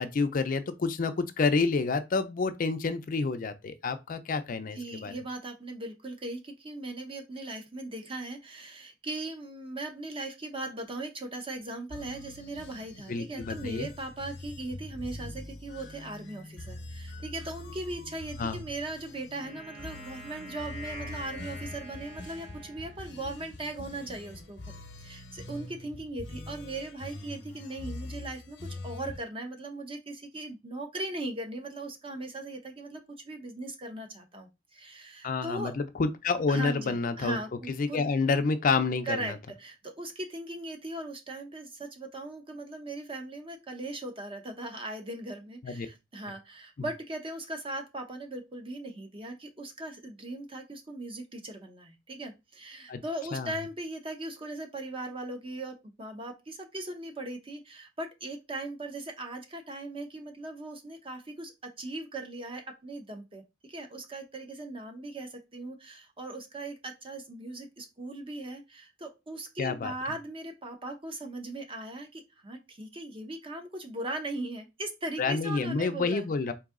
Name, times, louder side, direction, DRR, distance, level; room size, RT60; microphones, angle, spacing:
voice 1, 0.0-5.1 13.1-13.9 18.4-18.6 35.2-37.4 37.7-39.4 45.6-45.9 52.9-53.0 53.3-53.5 69.6-69.9 75.2-76.5, left 4 dB, 50° left, 0.4 m, -29 dB
voice 2, 4.7-35.7 36.5-38.2 39.0-76.3, right 2 dB, 30° right, 0.8 m, -39 dB
sound 1, 11.9-29.2, left 2 dB, 90° left, 0.8 m, -44 dB
Wind instrument woodwind instrument, 19.4-23.6, left 1 dB, 50° right, 2.6 m, -46 dB
3.9 x 2.7 x 3.6 m
head